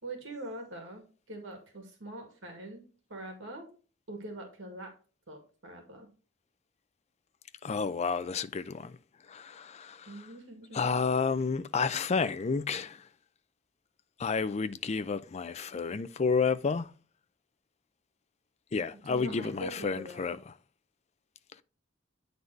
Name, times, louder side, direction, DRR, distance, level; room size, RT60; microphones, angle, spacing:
voice 1, 0.0-2.8 3.1-3.7 4.1-4.9 5.3-6.1 10.1-10.9 18.9-20.4, right 1 dB, 75° right, 2.2 m, -43 dB
voice 2, 7.6-9.0 9.3-10.1 10.7-13.0 14.2-16.9 18.7-20.4, left 5 dB, 35° left, 0.4 m, -30 dB
9.3 x 4.0 x 3.3 m
head